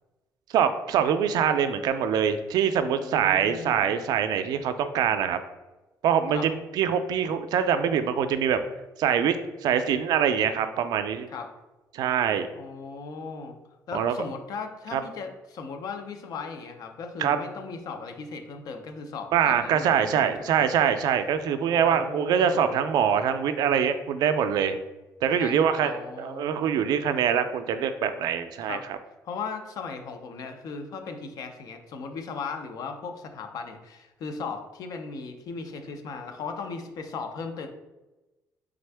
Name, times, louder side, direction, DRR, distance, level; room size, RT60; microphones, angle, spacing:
voice 1, 0.5-5.4 6.0-8.6 9.0-9.4 9.6-11.3 11.9-12.5 13.9-14.1 14.9-15.0 17.2-17.4 19.3-24.8 25.2-29.0, right 8 dB, 75° right, 9 dB, 0.4 m, -24 dB
voice 2, 3.0-3.9 6.3-6.5 11.3-11.5 12.5-13.6 13.9-20.7 21.7-22.8 25.4-26.8 28.6-28.9 29.2-37.7, left 4 dB, 65° left, 6 dB, 0.5 m, -37 dB
3.7 x 3.5 x 3.3 m, 1.1 s
cardioid pair, 140°, 7 cm